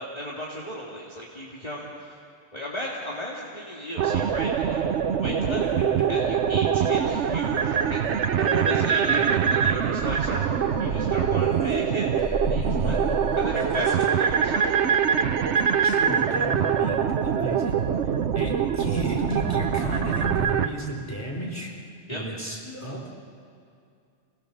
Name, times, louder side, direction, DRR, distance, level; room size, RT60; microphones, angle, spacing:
voice 1, 0.0-2.2 2.5-4.8 5.2-5.6 6.1-10.5 10.8-12.1 12.5-13.0 13.4-15.1 22.1-22.2, equal, 30° left, -5 dB, 2.4 m, -35 dB
sound 1, 4.0-20.7, right 7 dB, 65° right, 1.1 m, -24 dB
voice 2, 5.6-6.1 8.4-8.5 9.0-9.3 12.8-13.2 15.8-17.8 18.3-21.8 22.1-23.1, right 1 dB, 10° left, -2 dB, 3.7 m, -33 dB
sound 2, 10.2-11.8 12.2-16.2 16.5-18.0, equal, 50° left, 3.1 m, -37 dB
28.0 x 19.0 x 6.9 m, 2.4 s
omnidirectional pair, 1.3 m